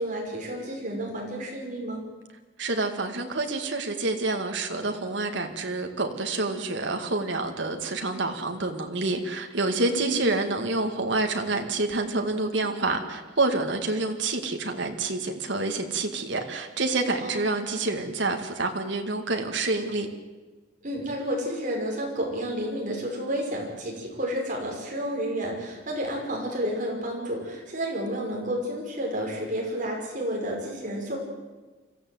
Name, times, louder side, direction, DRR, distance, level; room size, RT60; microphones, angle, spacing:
voice 1, 0.0-2.1 9.9-10.3 17.2-17.4 20.8-31.2, equal, 40° right, -1 dB, 5.6 m, -31 dB
voice 2, 2.6-20.1, right 2 dB, 65° right, 4 dB, 2.1 m, -28 dB
25.0 x 14.5 x 7.9 m, 1.3 s
head